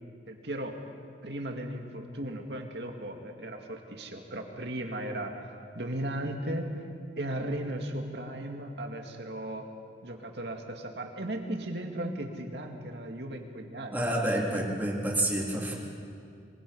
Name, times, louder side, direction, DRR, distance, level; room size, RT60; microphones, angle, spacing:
voice 1, 0.3-0.8 1.2-5.3 5.7-6.7 7.2-9.7 10.0-14.0, right 1 dB, 70° right, 3 dB, 2.4 m, -36 dB
voice 2, 13.9-15.8, right 1 dB, 10° right, -3 dB, 3.7 m, -28 dB
24.5 x 22.5 x 5.6 m, 2.4 s
head